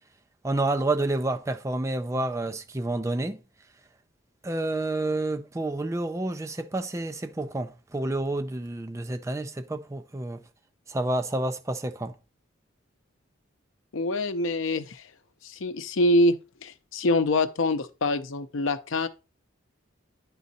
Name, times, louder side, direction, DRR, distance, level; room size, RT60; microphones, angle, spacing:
voice 1, 0.4-3.4 4.4-10.4 10.9-12.1, right 2 dB, 15° right, 0.4 m, -29 dB
voice 2, 13.9-15.0 15.4-19.1, left 1 dB, 75° left, 0.6 m, -25 dB
9.3 x 3.8 x 4.0 m
head